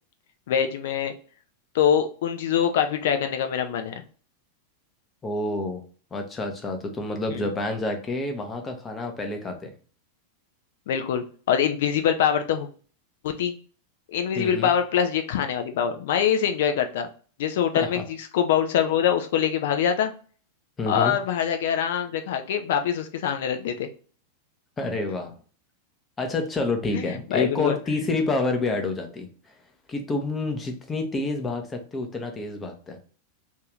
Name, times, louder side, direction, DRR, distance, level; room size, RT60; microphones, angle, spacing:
voice 1, 0.5-1.1 1.7-4.0 7.3-7.5 10.9-12.7 13.2-13.5 14.1-17.1 17.4-20.1 20.9-23.9 26.9-27.7, left 8 dB, 55° left, 7 dB, 0.3 m, -24 dB
voice 2, 5.2-5.8 6.1-9.7 14.4-14.7 17.8-18.0 20.8-21.1 24.8-25.4 26.2-29.3 29.9-33.0, left 2 dB, 20° left, 4 dB, 0.7 m, -28 dB
2.7 x 2.4 x 3.1 m, 0.41 s
figure-of-eight pair, 90°, 0 cm